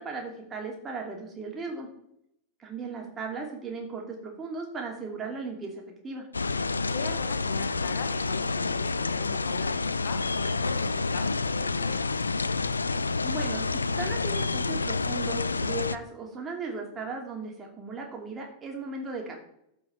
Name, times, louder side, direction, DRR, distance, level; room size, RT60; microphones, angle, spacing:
voice 1, 0.0-1.9 2.6-6.2 13.2-13.7 14.0-19.4, right 4 dB, 20° right, 0 dB, 2.8 m, -36 dB
sound 1, 6.3-16.0, left 3 dB, 75° left, 0.4 m, -29 dB
voice 2, 6.9-12.1, left 6 dB, 60° left, 9 dB, 1.0 m, -40 dB
14.0 x 4.9 x 4.6 m, 0.75 s
figure-of-eight pair, 90°, 0 cm